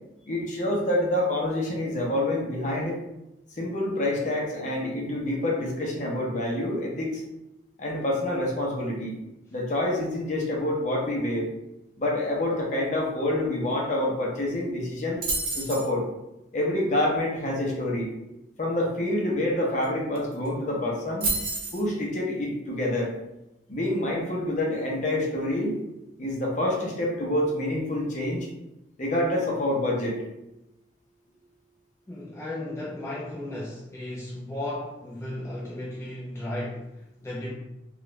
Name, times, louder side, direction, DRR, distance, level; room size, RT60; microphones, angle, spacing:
voice 1, 0.3-2.9 3.5-7.2 7.8-9.2 9.5-11.5 12.0-15.2 15.6-16.0 16.5-18.1 18.6-21.3 21.7-23.1 23.7-25.8 26.2-28.5 29.0-30.2, left 1 dB, 40° left, -2 dB, 0.7 m, -27 dB
sound 1, 15.2-15.9 19.8-19.9 20.1-20.5 21.2-21.8, right 3 dB, 50° right, 0.9 m, -28 dB
voice 2, 32.1-37.5, left 1 dB, 15° left, -6 dB, 0.4 m, -35 dB
3.0 x 2.3 x 3.0 m, 0.92 s
head